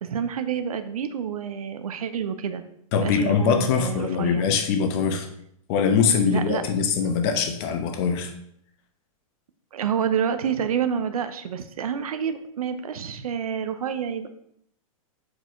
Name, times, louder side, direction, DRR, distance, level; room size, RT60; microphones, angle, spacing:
voice 1, 0.0-2.6 3.0-4.5 6.3-6.6 9.7-14.3, right 8 dB, 85° right, 10 dB, 0.7 m, -28 dB
voice 2, 2.9-5.3 5.7-8.3, left 6 dB, 45° left, 6 dB, 1.0 m, -22 dB
4.9 x 4.6 x 4.5 m, 0.72 s
hypercardioid pair, 140°, 18 cm